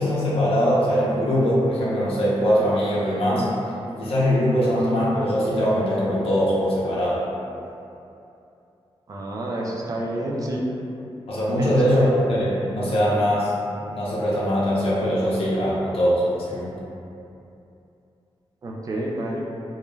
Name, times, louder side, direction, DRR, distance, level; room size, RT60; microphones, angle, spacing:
voice 1, 0.0-3.5 4.0-7.2 11.3-13.5 13.9-16.8, equal, 70° left, -8 dB, 0.5 m, -21 dB
voice 2, 9.1-10.7 11.6-12.2 18.6-19.4, right 1 dB, 35° right, -2 dB, 0.3 m, -29 dB
2.2 x 2.1 x 3.1 m, 2.7 s
wide cardioid pair, 160°, 10 cm